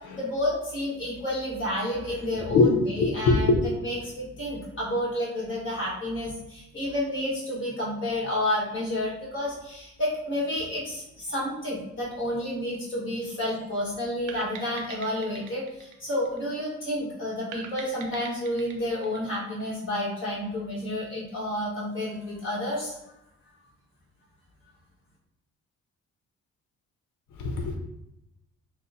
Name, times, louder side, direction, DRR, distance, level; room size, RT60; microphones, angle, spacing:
voice 1, 0.1-3.5 3.8-22.9, left 1 dB, 40° left, 1.5 m, -30 dB
voice 2, 3.0-3.6 27.4-27.8, left 3 dB, 80° left, 0.7 m, -21 dB
sound 1, 14.3-16.8 17.5-20.1, right 6 dB, 75° right, 0.7 m, -44 dB
6.4 x 2.1 x 2.7 m
cardioid pair, 90°, 30 cm